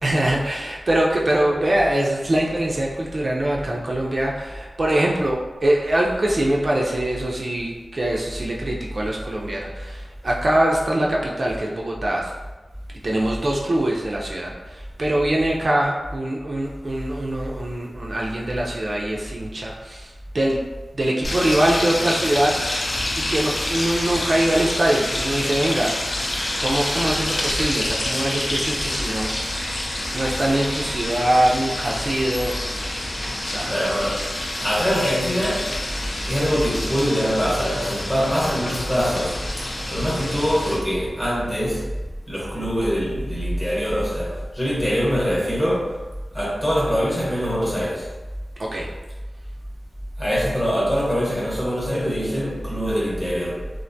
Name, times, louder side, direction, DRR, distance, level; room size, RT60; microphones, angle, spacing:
voice 1, 0.0-12.3 13.0-20.6 20.9-22.6 23.3-25.9 26.6-29.5 30.1-32.6 33.5-33.7 48.6-48.9, right 1 dB, 50° right, 0.3 m, -23 dB
sound 1, 21.2-40.8, left 1 dB, 55° left, 0.4 m, -27 dB
voice 2, 33.7-35.8 36.3-41.9 42.3-46.0 46.3-48.1 50.2-53.7, equal, 20° left, 0.9 m, -23 dB
2.4 x 2.1 x 2.6 m
wide cardioid pair, 95°, 0 cm